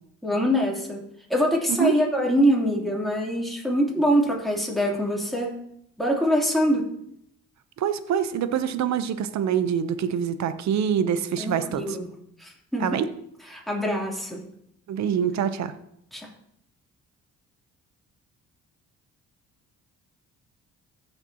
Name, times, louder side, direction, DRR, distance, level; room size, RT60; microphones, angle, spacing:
voice 1, 0.2-1.0 1.3-5.6 6.0-6.9 11.4-12.1 12.4-13.0 13.5-14.4 16.1-16.3, equal, ahead, -3 dB, 3.1 m, -24 dB
voice 2, 7.8-12.0 12.8-13.1 14.9-15.7, right 8 dB, 65° right, 11 dB, 0.8 m, -25 dB
14.5 x 6.6 x 2.9 m, 0.72 s
cardioid pair, 90°, 30 cm